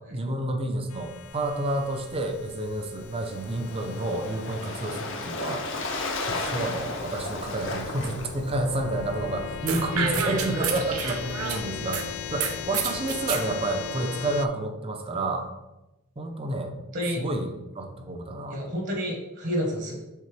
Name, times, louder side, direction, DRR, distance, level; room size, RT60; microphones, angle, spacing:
voice 1, 0.1-5.7 6.3-15.5 16.2-16.8 17.0-17.5 17.7-18.8, right 2 dB, 25° right, 5 dB, 0.6 m, -30 dB
sound 1, 0.9-14.5, left 7 dB, 75° left, 0.4 m, -39 dB
Waves surf, 3.0-8.7, left 3 dB, 60° left, 0.8 m, -34 dB
sound 2, 9.7-12.0 12.4-13.4, right 7 dB, 85° right, 0.7 m, -30 dB
voice 2, 9.9-10.6 16.9-17.2 18.5-19.9, equal, 55° right, 0 dB, 1.2 m, -30 dB
6.5 x 4.3 x 3.3 m, 0.99 s
head